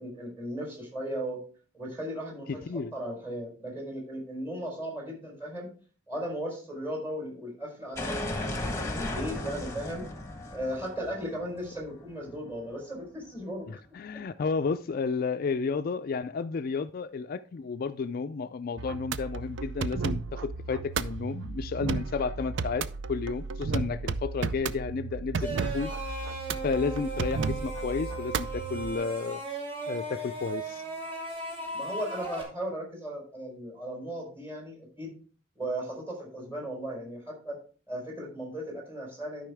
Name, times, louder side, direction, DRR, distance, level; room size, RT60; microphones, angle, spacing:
voice 1, 0.0-1.4 1.7-5.7 6.1-10.1 10.5-13.7 31.7-35.1 35.6-37.6 37.9-39.5, equal, 15° right, 4.5 m, -36 dB
voice 2, 2.5-2.9 13.7-25.9 26.6-29.4 29.9-30.8, left 5 dB, 50° left, 0.4 m, -32 dB
sound 1, 8.0-12.7, left 1 dB, 15° left, 1.3 m, -36 dB
sound 2, 18.8-28.9, right 4 dB, 75° right, 0.5 m, -34 dB
sound 3, 25.4-32.4, right 2 dB, 30° right, 2.8 m, -37 dB
12.0 x 5.5 x 3.4 m
head